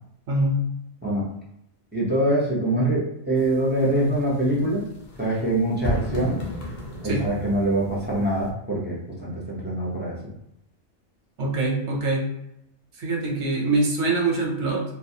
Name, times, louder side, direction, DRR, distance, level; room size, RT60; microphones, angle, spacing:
voice 1, 0.3-0.6 7.1-7.2 11.4-12.3 13.0-14.8, right 2 dB, 85° right, -1 dB, 1.0 m, -24 dB
voice 2, 1.0-1.3 1.9-4.9 5.2-6.4 7.0-10.2, right 1 dB, 15° right, -7 dB, 0.4 m, -24 dB
sound 1, 3.4-8.5, left 1 dB, 55° left, 0.6 m, -34 dB
2.3 x 2.1 x 2.7 m, 0.82 s
omnidirectional pair, 1.1 m